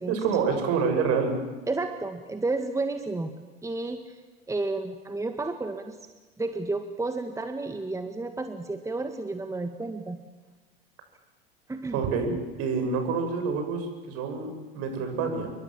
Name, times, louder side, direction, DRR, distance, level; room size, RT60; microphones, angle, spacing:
voice 1, 0.1-1.4 11.9-15.5, right 5 dB, 50° right, 5 dB, 7.0 m, -27 dB
voice 2, 1.7-3.3 3.6-4.2 4.5-6.0 6.4-10.2 11.7-12.4, right 3 dB, 10° right, 7 dB, 1.8 m, -31 dB
28.0 x 23.0 x 7.6 m, 1.2 s
hypercardioid pair, 85°, 30 cm